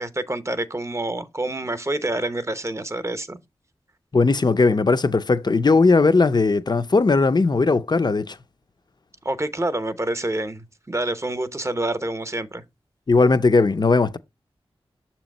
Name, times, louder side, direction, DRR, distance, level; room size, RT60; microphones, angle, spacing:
voice 1, 0.0-3.4 9.2-12.6, right 1 dB, 25° right, 0.8 m, -27 dB
voice 2, 4.1-8.4 13.1-14.2, left 3 dB, 45° left, 0.6 m, -18 dB
6.8 x 2.9 x 5.2 m
cardioid pair, 45°, 10 cm